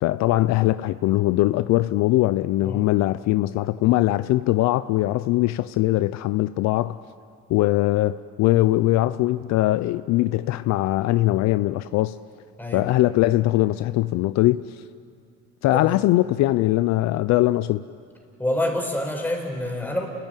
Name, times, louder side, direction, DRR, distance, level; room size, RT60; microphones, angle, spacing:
voice 1, 0.0-7.0 7.5-12.2 12.7-14.7 15.6-17.8, left 16 dB, 65° left, 0.5 m, -21 dB
voice 2, 12.6-12.9 15.7-16.0 18.4-20.1, left 1 dB, 5° left, 4.8 m, -27 dB
28.5 x 16.0 x 9.1 m
cardioid pair, 105°, 29 cm